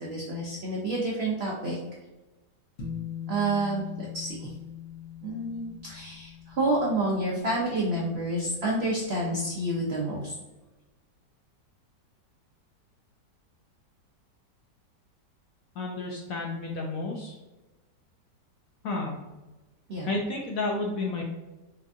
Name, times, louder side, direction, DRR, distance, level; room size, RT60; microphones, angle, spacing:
voice 1, 0.0-1.8 3.3-4.4 5.2-10.3 19.9-20.1, right 2 dB, 80° right, -4 dB, 0.5 m, -29 dB
sound 1, 2.8-9.4, left 9 dB, 50° left, 1.1 m, -42 dB
voice 2, 15.8-17.4 18.8-19.2 20.1-21.2, left 2 dB, 70° left, -1 dB, 0.8 m, -31 dB
4.4 x 2.5 x 2.5 m, 1.1 s
omnidirectional pair, 1.9 m